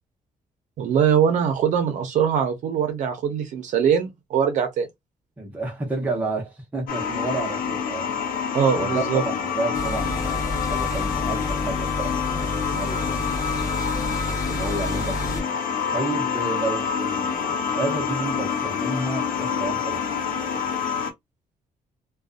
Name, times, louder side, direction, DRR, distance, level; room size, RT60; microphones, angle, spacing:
voice 1, 0.8-4.9 8.5-9.2, right 7 dB, 65° right, 0.7 m, -22 dB
voice 2, 5.4-8.2 8.7-13.6 14.5-15.5 15.9-20.0, right 3 dB, 10° right, 0.7 m, -31 dB
sound 1, 6.9-21.1, left 7 dB, 75° left, 0.8 m, -27 dB
sound 2, 9.7-15.4, left 1 dB, 25° left, 0.6 m, -30 dB
2.5 x 2.3 x 2.4 m
cardioid pair, 180°, 14 cm